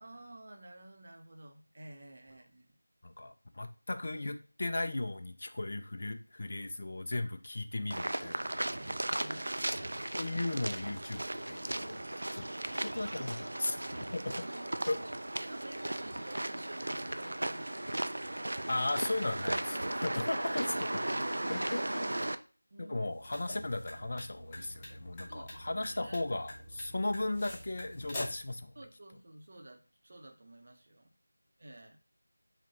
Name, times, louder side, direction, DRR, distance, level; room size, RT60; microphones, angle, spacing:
voice 1, 0.0-2.8 7.3-7.4 8.7-10.1 13.0-13.4 14.4-14.7 15.4-18.1 20.4-20.8 21.3-21.8 22.7-23.0 25.3-26.2 28.7-31.1 31.6-32.0, right 1 dB, 40° right, 4 dB, 0.7 m, -52 dB
voice 2, 3.0-8.6 10.2-12.0 12.3-12.5 12.8-13.8 14.1-14.3 14.9-15.0 18.7-20.6 21.5-22.0 22.8-28.7, left 2 dB, 45° left, 8 dB, 0.4 m, -36 dB
sound 1, 7.9-22.4, right 1 dB, 60° right, 0.3 m, -36 dB
sound 2, 23.1-28.5, left 1 dB, 10° left, 0.6 m, -46 dB
4.9 x 2.1 x 2.8 m, 0.35 s
figure-of-eight pair, 170°, 0 cm